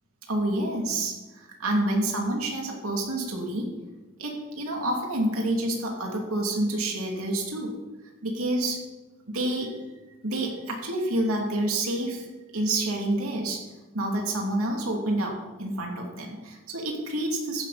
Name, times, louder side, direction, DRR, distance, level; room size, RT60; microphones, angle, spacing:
voice 1, 0.3-3.7 4.2-7.7 8.2-8.8 9.3-9.7 10.2-12.3 12.5-13.6 13.9-17.6, right 1 dB, 90° right, 0 dB, 2.6 m, -28 dB
15.0 x 11.0 x 4.1 m, 1.2 s
head